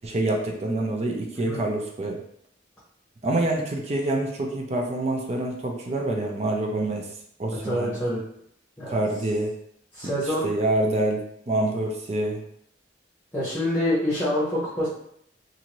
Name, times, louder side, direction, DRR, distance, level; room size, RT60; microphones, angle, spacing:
voice 1, 0.0-2.2 3.2-7.1 7.4-7.9 8.9-9.5 10.4-12.4, right 2 dB, 35° right, 1 dB, 0.5 m, -26 dB
voice 2, 7.6-8.2 8.8-9.0 9.9-10.5 13.3-14.9, left 1 dB, 10° left, -10 dB, 0.9 m, -26 dB
2.7 x 2.5 x 3.0 m, 0.70 s
head